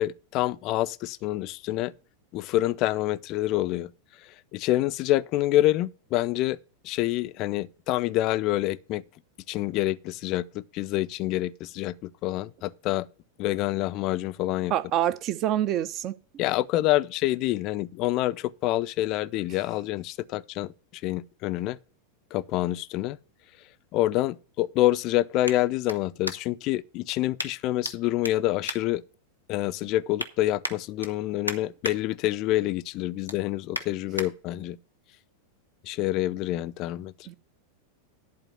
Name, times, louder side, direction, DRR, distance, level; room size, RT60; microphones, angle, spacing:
voice 1, 0.0-1.9 2.3-3.9 4.5-6.6 6.8-9.0 9.5-13.1 13.4-14.7 16.4-21.8 22.3-23.2 23.9-29.0 29.5-34.8 35.8-37.1, left 15 dB, 40° left, 0.5 m, -27 dB
voice 2, 14.7-16.1 37.3-37.4, right 11 dB, 35° right, 0.7 m, -26 dB
sound 1, 23.3-26.7 27.4-27.9 28.2-29.5 29.9-30.3 30.6-32.0 32.4-32.6 33.0-34.3 34.8-34.9, equal, 90° right, 0.9 m, -37 dB
11.0 x 4.3 x 7.6 m
figure-of-eight pair, 90°, 0 cm